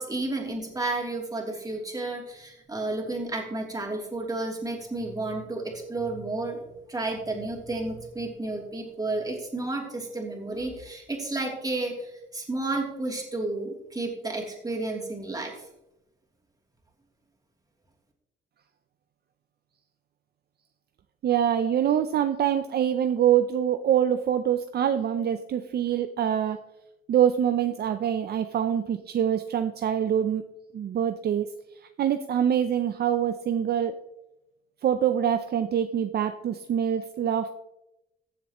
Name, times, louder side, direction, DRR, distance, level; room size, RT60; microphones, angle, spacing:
voice 1, 0.0-15.6, right 2 dB, 20° right, -1 dB, 3.0 m, -32 dB
voice 2, 21.2-26.6 27.1-30.4 30.7-31.5 32.0-34.0 34.8-37.5, right 9 dB, 55° right, 9 dB, 0.6 m, -25 dB
15.5 x 7.3 x 3.0 m, 0.87 s
cardioid pair, 90°, 20 cm